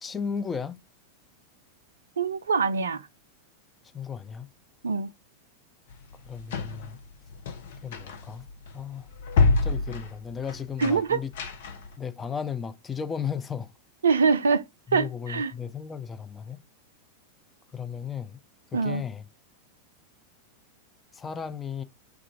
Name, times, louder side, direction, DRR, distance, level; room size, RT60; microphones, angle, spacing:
voice 1, 0.0-0.8 3.9-4.5 6.2-7.0 7.8-8.5 8.7-9.1 9.5-11.3 12.0-13.7 14.9-16.6 17.7-18.4 18.7-19.2 21.1-21.8, left 7 dB, 20° left, 0.5 m, -35 dB
voice 2, 2.2-3.0 4.8-5.1 10.8-11.2 14.0-14.6 14.9-15.5 18.7-19.0, right 5 dB, 70° right, 0.4 m, -24 dB
sound 1, 5.9-12.0, left 4 dB, 55° left, 0.7 m, -28 dB
3.5 x 2.4 x 4.5 m
figure-of-eight pair, 90°, 0 cm